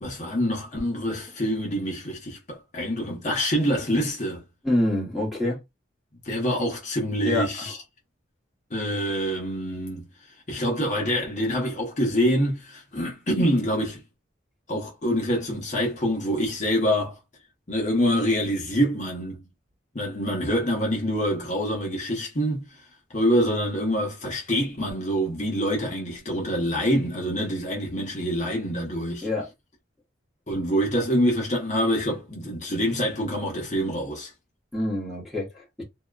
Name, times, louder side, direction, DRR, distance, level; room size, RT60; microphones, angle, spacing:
voice 1, 0.0-4.4 6.2-7.8 8.7-10.1 10.5-14.0 14.7-17.2 17.7-19.4 19.9-22.7 23.1-29.3 30.5-34.3, equal, 40° left, 0.8 m, -26 dB
voice 2, 4.6-5.6 7.2-7.7 29.2-29.5 34.7-35.8, left 1 dB, ahead, 1.0 m, -26 dB
2.8 x 2.2 x 2.3 m
head